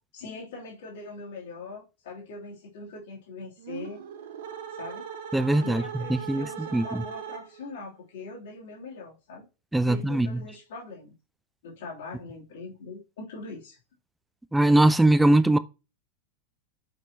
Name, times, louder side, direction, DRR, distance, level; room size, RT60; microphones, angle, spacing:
voice 1, 0.1-4.0 4.7-5.0 5.6-9.4 9.8-11.1 11.6-13.8, left 3 dB, 55° left, 3.3 m, -41 dB
sound 1, 3.6-7.8, right 8 dB, 55° right, 1.1 m, -39 dB
voice 2, 5.3-6.5 6.7-7.0 9.7-10.3 14.5-15.6, right 1 dB, 5° right, 0.5 m, -21 dB
7.7 x 5.9 x 3.0 m
figure-of-eight pair, 90°, 0 cm